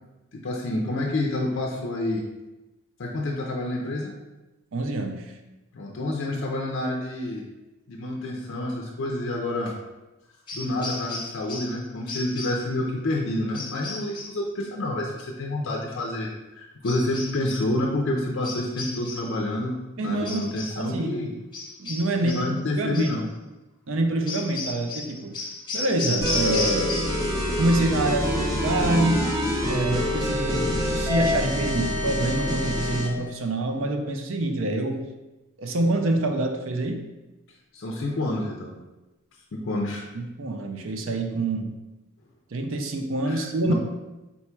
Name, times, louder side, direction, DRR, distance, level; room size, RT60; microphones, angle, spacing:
voice 1, 0.3-2.2 3.0-4.1 5.7-7.4 7.9-9.7 10.5-16.3 16.6-19.7 20.0-21.3 22.2-23.3 37.7-38.7 39.5-40.0 43.3-43.4 43.7-43.8, left 1 dB, 55° left, -1 dB, 0.4 m, -28 dB
voice 2, 4.7-5.3 20.0-21.4 21.8-23.2 23.9-25.3 25.7-27.0 27.6-29.3 29.6-30.7 30.9-35.0 35.6-37.0 40.1-41.8 42.5-43.7, right 2 dB, 60° right, 4 dB, 0.5 m, -26 dB
sound 1, 10.5-11.8 12.1-12.7 13.5-14.4 16.8-17.7 18.4-19.4 20.2-20.9 21.5-22.5 22.9-23.2 24.3-27.3 27.6-28.1, left 3 dB, 20° left, 0.8 m, -34 dB
sound 2, 26.2-33.1, left 1 dB, 15° right, 0.6 m, -26 dB
4.1 x 2.2 x 4.4 m, 1.1 s
head